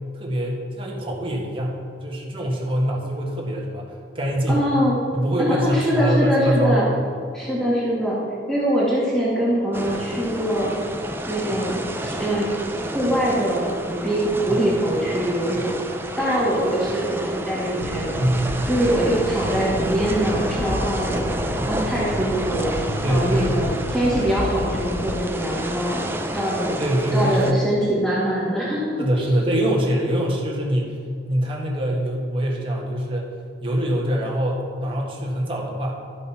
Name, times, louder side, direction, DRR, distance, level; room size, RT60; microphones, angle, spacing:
voice 1, 0.1-4.6 5.1-6.8 14.5-14.6 15.6-15.7 18.2-18.7 20.7-20.8 21.6-21.8 23.0-23.7 26.8-27.7 29.0-31.0 31.2-33.3 33.6-36.0, equal, 30° right, -2 dB, 1.6 m, -24 dB
voice 2, 4.5-4.9 5.4-6.9 7.3-8.2 8.5-10.7 11.3-12.5 12.9-15.7 16.2-18.2 18.7-21.2 21.7-22.7 23.1-26.8 27.1-29.3, equal, 5° left, -7 dB, 1.9 m, -23 dB
sound 1, 9.7-27.5, right 1 dB, 10° right, 0.6 m, -30 dB
sound 2, 17.8-25.2, left 1 dB, 90° left, 0.8 m, -31 dB
12.5 x 5.4 x 5.7 m, 2.2 s
head